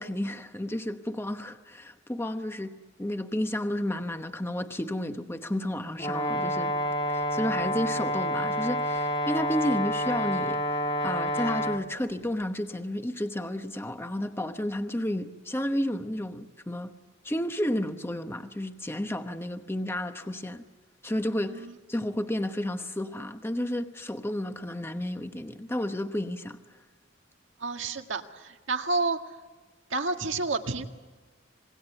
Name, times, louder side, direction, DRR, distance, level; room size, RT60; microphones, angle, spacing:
voice 1, 0.0-2.7 3.0-6.7 7.1-10.6 11.0-16.9 17.2-20.6 21.0-26.6, left 1 dB, 15° left, 1.0 m, -31 dB
Brass instrument, 6.0-11.8, equal, 30° left, 1.5 m, -28 dB
voice 2, 27.6-29.2 29.9-30.8, right 3 dB, 85° right, 1.9 m, -30 dB
26.5 x 21.0 x 8.1 m
head